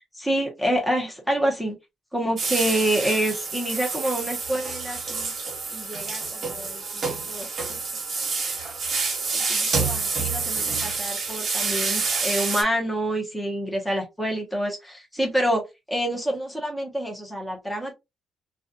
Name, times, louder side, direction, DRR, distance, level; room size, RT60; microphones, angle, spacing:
voice 1, 0.1-1.8 2.1-5.3 5.7-7.8 9.3-15.6 15.9-17.9, right 1 dB, 5° left, 0.9 m, -27 dB
sound 1, 2.4-12.6, right 4 dB, 50° right, 0.9 m, -28 dB
2.4 x 2.3 x 2.6 m
cardioid pair, 90°, 0 cm